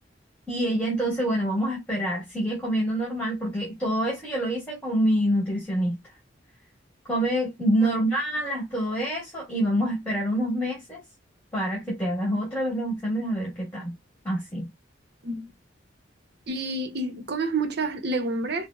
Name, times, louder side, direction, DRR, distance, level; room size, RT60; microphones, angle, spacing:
voice 1, 0.5-6.0 7.1-11.0 11.5-13.9 14.2-14.7, right 1 dB, 10° left, 1.7 m, -26 dB
voice 2, 16.5-18.7, right 2 dB, 60° right, 0.8 m, -29 dB
4.9 x 2.1 x 2.3 m
head